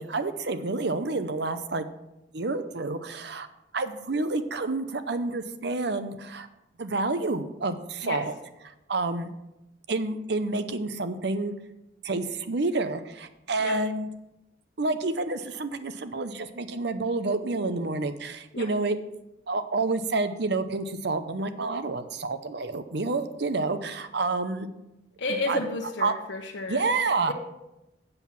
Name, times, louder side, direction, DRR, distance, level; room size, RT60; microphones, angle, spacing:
voice 1, 0.0-1.9 2.3-3.5 3.7-6.5 6.8-8.3 8.6-9.3 9.9-11.5 12.0-14.1 14.8-19.0 19.5-24.7 25.5-25.6 26.0-26.1 26.7-27.3, right 3 dB, 65° right, 10 dB, 0.7 m, -29 dB
voice 2, 25.2-26.9 27.3-27.4, left 2 dB, 75° left, -2 dB, 1.0 m, -31 dB
7.9 x 7.4 x 5.9 m, 0.92 s
head